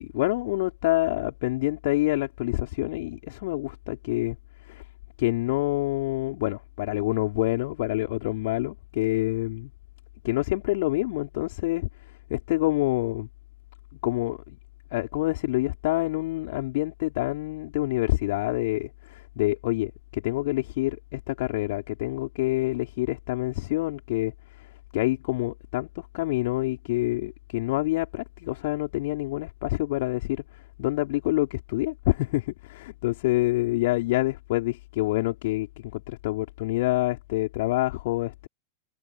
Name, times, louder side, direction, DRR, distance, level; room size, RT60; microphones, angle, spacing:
voice 1, 0.0-4.4 4.7-4.8 5.2-9.7 10.2-11.9 12.3-13.3 14.0-14.6 14.9-24.3 24.9-30.4 30.8-38.5, left 18 dB, 50° left, 4.9 m, -27 dB
figure-of-eight pair, 90°, 0 cm